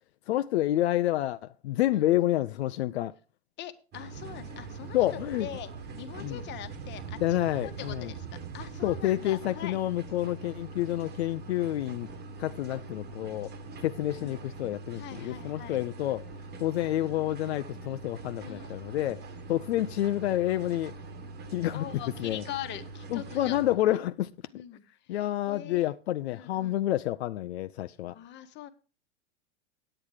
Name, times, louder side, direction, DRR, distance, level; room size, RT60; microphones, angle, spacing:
voice 1, 0.3-3.1 4.9-5.5 6.2-6.4 7.2-8.1 8.8-12.1 12.4-13.5 13.8-16.3 16.6-19.2 19.5-20.9 21.5-21.8 22.2-22.4 23.1-24.3 25.1-28.2, left 14 dB, 75° left, 0.5 m, -29 dB
voice 2, 3.6-5.0 5.4-9.8 14.2-14.4 14.9-15.8 18.4-18.7 21.7-23.9 24.5-25.9 26.3-26.8 28.1-28.7, left 11 dB, 35° left, 1.1 m, -43 dB
sound 1, 3.9-23.8, right 3 dB, 30° right, 1.3 m, -43 dB
sound 2, 4.1-9.1, right 16 dB, 50° right, 0.5 m, -44 dB
8.8 x 8.8 x 4.8 m
hypercardioid pair, 115°, 32 cm